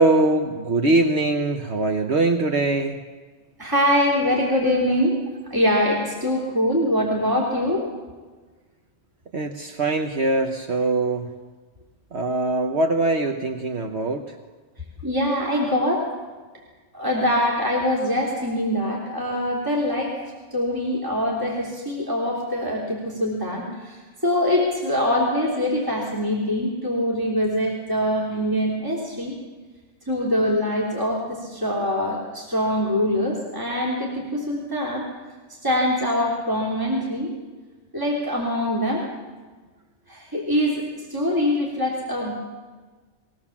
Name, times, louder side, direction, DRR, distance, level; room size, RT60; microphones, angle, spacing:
voice 1, 0.0-3.0 9.3-11.3 12.1-14.3 31.8-31.9, right 2 dB, 65° right, 5 dB, 1.4 m, -22 dB
voice 2, 3.6-5.2 5.5-7.8 15.0-16.1 16.9-20.1 20.5-29.3 30.1-35.1 35.5-37.3 37.9-39.0 40.1-42.3, left 1 dB, 15° right, -4 dB, 3.3 m, -23 dB
21.5 x 18.5 x 7.3 m, 1.4 s
omnidirectional pair, 1.2 m